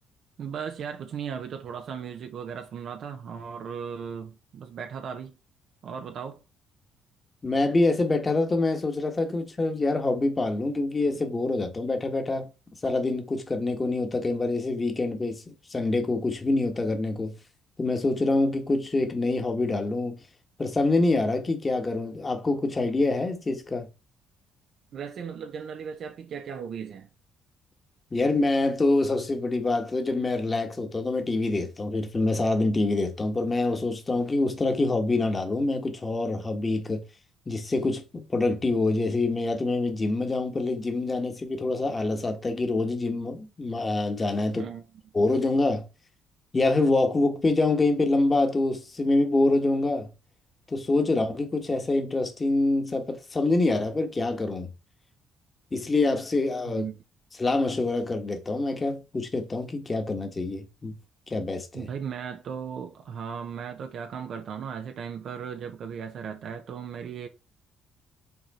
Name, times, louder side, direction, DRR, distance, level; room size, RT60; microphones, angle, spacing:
voice 1, 0.4-5.4 5.8-6.4 24.9-27.1 44.5-44.9 56.7-57.0 61.7-67.3, right 7 dB, 60° right, 0.8 m, -36 dB
voice 2, 7.4-12.5 12.8-15.4 15.7-17.3 17.8-20.2 20.6-23.9 28.1-37.0 37.5-44.6 45.1-45.8 46.5-50.1 50.7-54.7 55.7-56.9 57.4-60.9 61.3-61.9, left 2 dB, 25° left, 1.5 m, -25 dB
5.9 x 3.8 x 4.3 m
cardioid pair, 95°, 0 cm